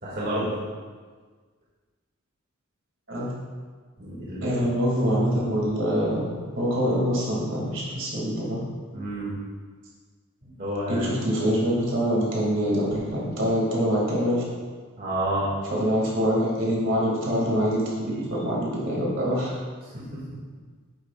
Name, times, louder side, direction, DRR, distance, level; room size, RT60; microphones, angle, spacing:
voice 1, 0.0-0.5 4.0-4.6 8.9-9.4 10.4-11.0 15.0-15.6 19.9-20.2, right 1 dB, 45° right, -7 dB, 2.2 m, -29 dB
voice 2, 4.4-6.3 6.6-8.6 10.9-14.4 15.7-19.5, equal, 60° right, -5 dB, 2.4 m, -25 dB
10.5 x 9.0 x 2.5 m, 1.5 s
head